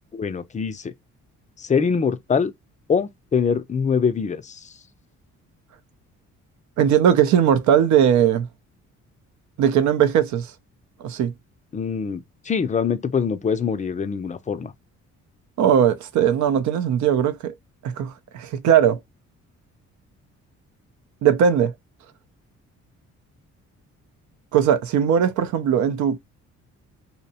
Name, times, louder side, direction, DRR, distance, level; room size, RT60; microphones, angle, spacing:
voice 1, 0.1-0.9 1.6-2.5 2.9-4.6 11.7-14.7, left 6 dB, 25° left, 0.4 m, -24 dB
voice 2, 6.8-8.5 9.6-10.5 11.0-11.3 15.6-17.5 17.8-19.0 21.2-21.7 24.5-26.2, right 8 dB, 70° right, 0.5 m, -19 dB
2.7 x 2.0 x 2.7 m
cardioid pair, 90°, 30 cm